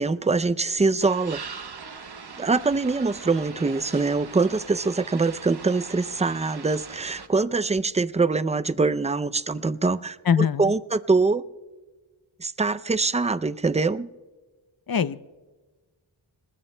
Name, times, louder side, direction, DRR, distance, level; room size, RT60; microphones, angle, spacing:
voice 1, 0.0-1.4 2.4-10.2 10.6-11.4 12.4-14.1, right 3 dB, 15° right, 13 dB, 0.4 m, -23 dB
sound 1, 1.0-7.3, right 5 dB, 55° right, 1.0 m, -41 dB
voice 2, 10.2-10.7 14.9-15.2, left 7 dB, 45° left, 15 dB, 0.6 m, -22 dB
28.0 x 20.0 x 2.2 m, 1.3 s
wide cardioid pair, 50°, 48 cm